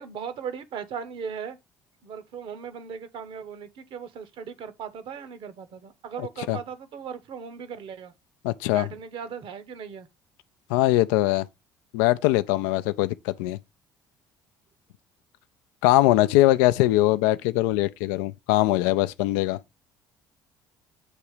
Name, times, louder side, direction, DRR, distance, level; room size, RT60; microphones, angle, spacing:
voice 1, 0.0-1.6 2.0-8.1 8.7-10.1, right 7 dB, 60° right, 0.9 m, -38 dB
voice 2, 8.4-8.9 10.7-11.5 11.9-13.6 15.8-19.6, left 16 dB, 80° left, 0.4 m, -21 dB
8.2 x 2.9 x 4.8 m
hypercardioid pair, 65°, 10 cm